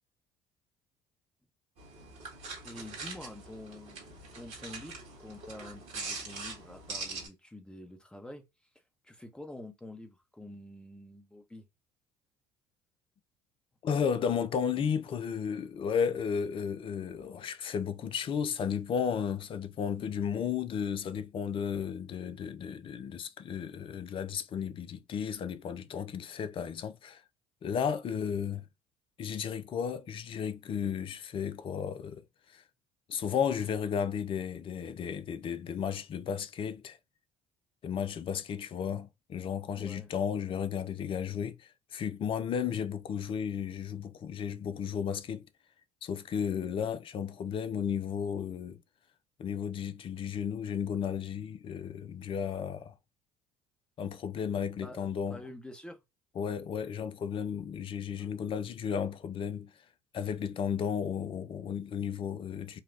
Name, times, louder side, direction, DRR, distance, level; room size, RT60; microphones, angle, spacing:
sound 1, 1.8-7.3, right 3 dB, 60° right, 1.5 m, -43 dB
voice 1, 2.6-4.1 4.3-8.4 9.0-11.7 39.7-40.1 54.8-56.0 58.2-58.3, left 1 dB, 5° left, 1.0 m, -47 dB
voice 2, 13.8-27.2 27.6-28.6 29.2-32.2 32.5-32.6 33.1-37.0 37.8-45.5 46.0-48.8 49.4-52.9 54.0-55.4 56.4-59.7 60.1-62.8, left 7 dB, 40° left, 0.5 m, -34 dB
4.0 x 2.3 x 2.6 m
hypercardioid pair, 60°, 13 cm